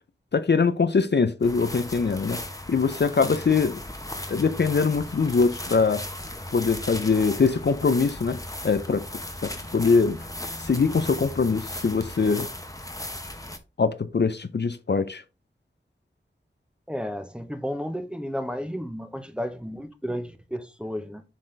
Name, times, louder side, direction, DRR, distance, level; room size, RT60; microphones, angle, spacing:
voice 1, 0.3-2.4 2.7-3.8 4.3-6.0 6.5-8.4 8.6-9.0 9.4-10.2 10.6-12.5 13.8-15.2, left 4 dB, 60° left, 0.6 m, -22 dB
sound 1, 1.4-13.6, left 1 dB, 15° left, 1.0 m, -37 dB
voice 2, 16.9-21.2, equal, 5° right, 0.9 m, -32 dB
7.5 x 4.2 x 3.3 m
wide cardioid pair, 60°, 20 cm